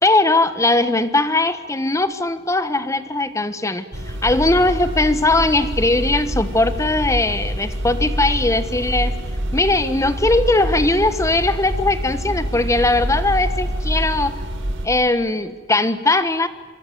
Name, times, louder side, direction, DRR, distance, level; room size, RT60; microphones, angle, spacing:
voice 1, 0.0-3.9 4.2-9.1 9.5-14.3 14.8-16.5, left 2 dB, 15° left, 11 dB, 1.3 m, -19 dB
sound 1, 3.9-14.9, equal, 85° right, 4.1 m, -26 dB
25.5 x 24.0 x 8.0 m, 1.3 s
head